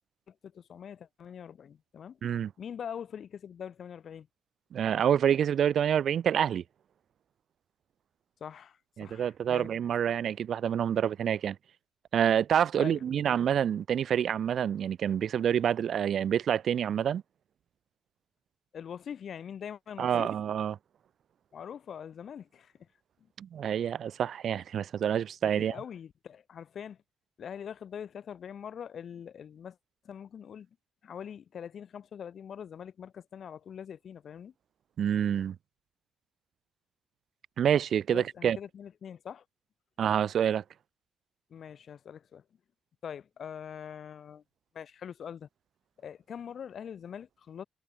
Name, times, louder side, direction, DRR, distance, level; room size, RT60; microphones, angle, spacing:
voice 1, 0.3-2.2 2.6-4.3 8.4-9.7 12.8-13.3 18.7-20.3 21.5-22.9 25.6-27.0 27.4-29.8 30.0-30.7 31.0-34.5 38.1-39.4 41.5-42.4 43.0-44.4 44.7-45.5 46.0-47.6, left 8 dB, 55° left, 5.7 m, -43 dB
voice 2, 4.7-6.6 9.0-11.6 12.1-17.2 20.0-20.7 23.4-25.8 35.0-35.5 37.6-38.6 40.0-40.6, right 9 dB, 60° right, 1.5 m, -27 dB
cardioid pair, 90°, 0 cm